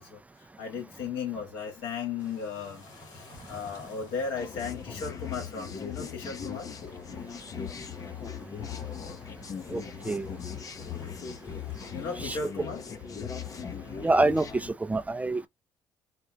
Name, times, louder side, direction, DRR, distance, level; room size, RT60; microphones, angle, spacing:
voice 1, 0.0-2.9 3.1-6.7 11.9-12.8, left 5 dB, 80° left, 2.0 m, -36 dB
sound 1, 2.2-12.2, left 3 dB, 60° left, 2.4 m, -54 dB
sound 2, 4.4-14.7, left 7 dB, 45° left, 0.8 m, -39 dB
voice 2, 14.0-15.5, right 2 dB, 15° right, 0.4 m, -26 dB
4.3 x 2.2 x 3.8 m
supercardioid pair, 75°, 8 cm